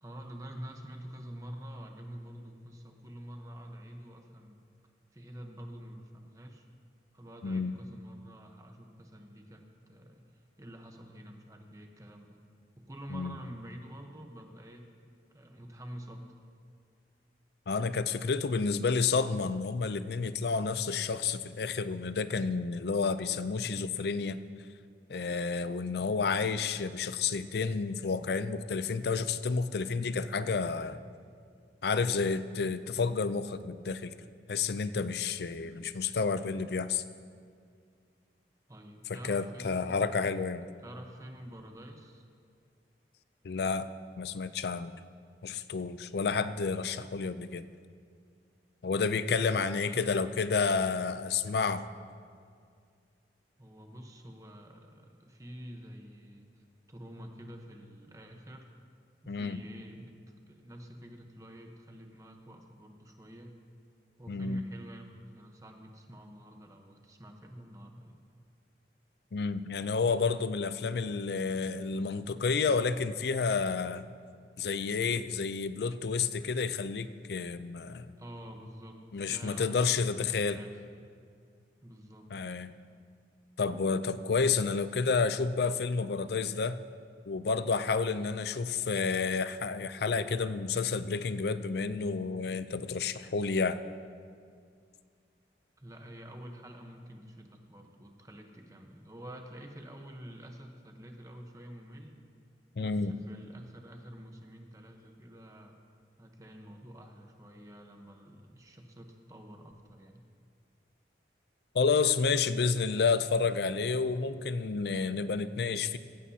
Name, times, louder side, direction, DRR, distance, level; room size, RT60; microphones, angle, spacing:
voice 1, 0.0-4.6 5.1-6.7 7.1-12.4 12.8-14.9 15.3-16.2 35.6-35.8 38.7-40.4 40.8-42.2 49.9-50.5 53.6-58.7 59.2-63.5 64.2-68.2 78.2-80.7 81.8-82.3 95.8-102.2 102.8-105.8 106.2-110.2, equal, 20° right, 3 dB, 1.0 m, -48 dB
voice 2, 7.4-7.7 13.1-13.4 17.7-24.4 25.1-31.0 31.8-34.1 34.5-37.0 39.1-40.7 43.4-43.9 44.2-44.9 45.4-47.6 48.8-51.9 59.3-59.6 64.3-64.6 69.3-74.1 74.6-78.1 79.1-80.6 82.3-82.7 83.6-86.8 87.3-93.8 102.8-103.2 111.7-116.0, left 4 dB, 60° left, 13 dB, 0.4 m, -30 dB
15.5 x 15.5 x 2.8 m, 2.2 s
head